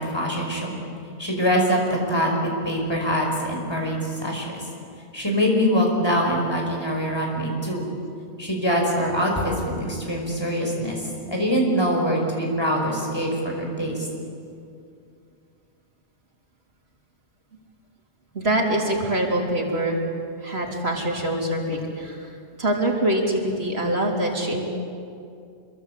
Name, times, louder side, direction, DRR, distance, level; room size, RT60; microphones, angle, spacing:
voice 1, 0.1-0.8 1.2-4.5 5.1-7.8 8.4-11.0 11.3-14.0, equal, 20° left, 0 dB, 5.3 m, -24 dB
voice 2, 18.3-20.0 20.4-24.7, right 1 dB, 65° right, 0 dB, 3.9 m, -24 dB
26.5 x 22.5 x 8.5 m, 2.4 s
omnidirectional pair, 1.1 m